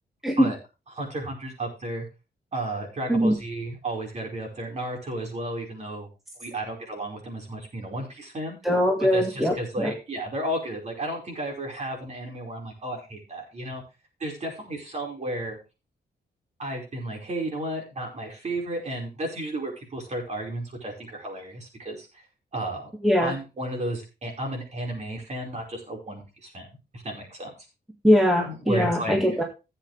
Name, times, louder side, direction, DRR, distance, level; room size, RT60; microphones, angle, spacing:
voice 1, 0.9-2.1 2.5-6.1 6.4-8.6 9.0-13.8 14.2-15.6 16.6-22.1 22.5-22.9 23.2-26.7 26.9-27.5 28.5-29.2, right 1 dB, 40° right, 0 dB, 5.2 m, -33 dB
voice 2, 8.6-9.9 23.0-23.3 28.0-29.4, equal, ahead, 0 dB, 1.8 m, -21 dB
15.5 x 8.1 x 3.4 m, 0.29 s
wide cardioid pair, 155°, 17 cm